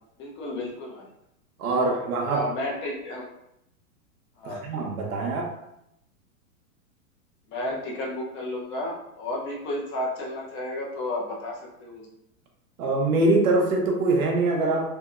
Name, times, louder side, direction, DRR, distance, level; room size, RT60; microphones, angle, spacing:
voice 1, 0.2-1.1 1.7-3.3 4.4-4.7 7.5-12.1, left 1 dB, 25° left, -2 dB, 0.7 m, -32 dB
voice 2, 1.6-2.4 4.4-5.5 12.8-14.9, right 2 dB, 70° right, 0 dB, 0.8 m, -23 dB
2.8 x 2.7 x 2.4 m, 0.81 s
hypercardioid pair, 115°, 43 cm